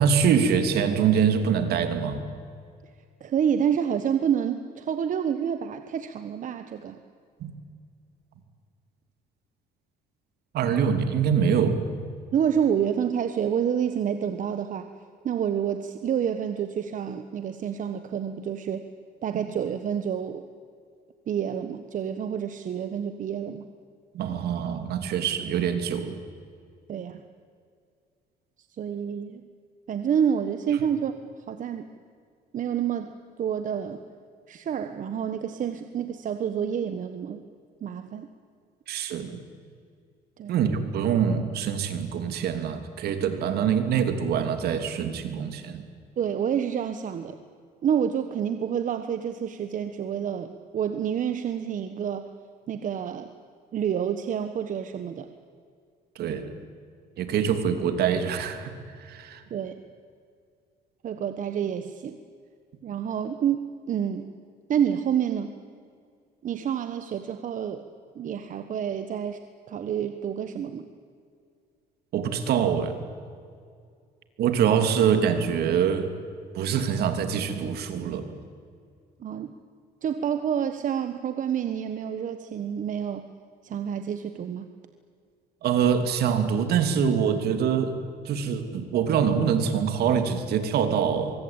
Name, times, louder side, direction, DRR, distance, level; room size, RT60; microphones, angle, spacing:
voice 1, 0.0-2.2 7.4-7.5 10.5-11.8 19.3-19.4 24.1-26.2 38.9-39.4 40.5-45.8 56.1-56.5 57.2-59.4 72.1-73.0 74.4-76.1 76.5-78.3 85.6-88.0 88.2-91.4, right 7 dB, 70° right, 8 dB, 3.1 m, -24 dB
voice 2, 3.2-7.0 12.3-14.9 15.2-18.8 19.2-20.4 21.3-23.7 26.9-27.2 28.8-29.5 29.9-31.1 31.5-31.9 32.5-33.1 33.4-34.0 34.5-37.4 37.8-38.3 40.4-40.5 46.2-47.4 47.8-52.3 52.7-53.3 53.7-55.3 59.5-59.7 61.0-62.2 62.8-64.3 64.7-65.6 66.4-67.9 68.1-70.9 79.2-79.5 80.0-83.3 83.6-84.7, right 8 dB, 50° right, 9 dB, 1.3 m, -28 dB
24.0 x 23.5 x 8.9 m, 2.2 s
cardioid pair, 110°, 17 cm